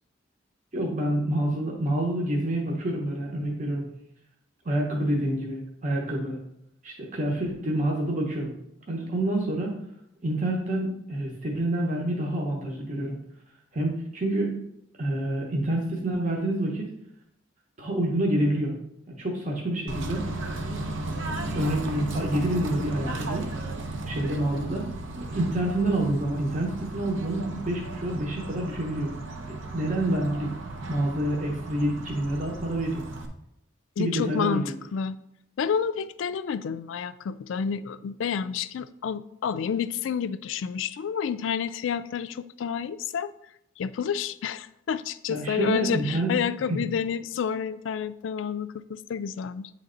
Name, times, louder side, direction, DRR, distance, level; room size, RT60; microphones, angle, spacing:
voice 1, 0.7-3.8 4.6-6.4 6.8-8.5 8.9-9.8 10.2-13.2 13.7-14.6 15.0-16.9 17.8-18.7 19.2-20.3 21.5-23.5 24.1-24.9 25.2-29.1 29.4-30.5 30.9-33.0 34.0-34.7 45.3-46.3 46.7-46.8, right 1 dB, 40° right, -1 dB, 0.9 m, -27 dB
Bird / Train, 19.9-33.3, right 2 dB, 75° right, 0.8 m, -35 dB
voice 2, 34.0-35.2 35.6-43.3 43.8-49.7, left 7 dB, 75° left, 14 dB, 0.3 m, -29 dB
9.0 x 3.3 x 3.8 m, 0.79 s
head